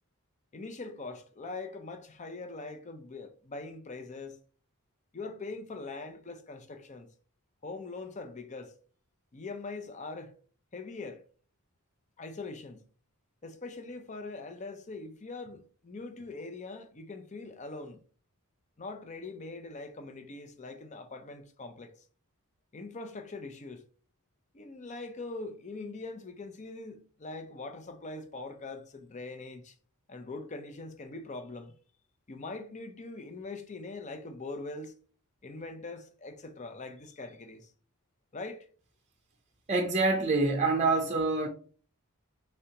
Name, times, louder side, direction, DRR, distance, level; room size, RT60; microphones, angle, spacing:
voice 1, 0.5-4.4 5.1-7.1 7.6-8.7 9.3-10.3 10.7-11.2 12.2-12.9 13.4-18.0 18.8-21.9 22.7-23.8 24.5-29.7 30.1-31.7 32.3-34.9 35.4-37.7 38.3-38.7, left 3 dB, 35° left, 0.6 m, -42 dB
voice 2, 39.7-41.5, right 3 dB, 30° right, 0.6 m, -26 dB
5.0 x 3.3 x 2.8 m
head